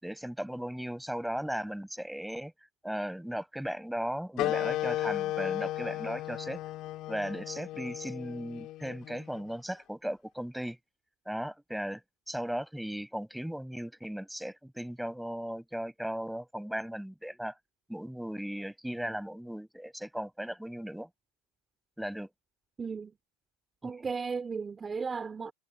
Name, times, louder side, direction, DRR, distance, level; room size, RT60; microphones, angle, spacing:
voice 1, 0.0-2.5 2.8-6.6 7.1-10.8 11.2-12.0 12.3-17.5 17.9-21.1 22.0-22.3 23.8-24.1, equal, ahead, 6.7 m, -37 dB
sound 1, 4.4-9.5, left 15 dB, 50° left, 2.9 m, -35 dB
voice 2, 22.8-23.1 23.8-25.5, right 5 dB, 20° right, 2.8 m, -35 dB
hypercardioid pair, 105°, 0 cm